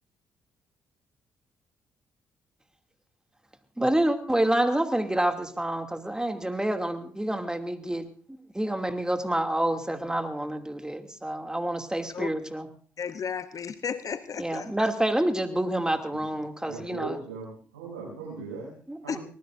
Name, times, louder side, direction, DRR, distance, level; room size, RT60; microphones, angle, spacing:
voice 1, 3.8-8.1 8.5-12.7 14.4-17.2 18.9-19.2, right 1 dB, 10° right, 5 dB, 2.7 m, -28 dB
voice 2, 13.0-14.7 19.1-19.2, left 7 dB, 50° left, 13 dB, 0.9 m, -33 dB
voice 3, 16.6-18.7 19.0-19.2, right 4 dB, 90° right, -5 dB, 6.6 m, -39 dB
24.5 x 19.0 x 2.6 m, 0.42 s
hypercardioid pair, 50°, 7 cm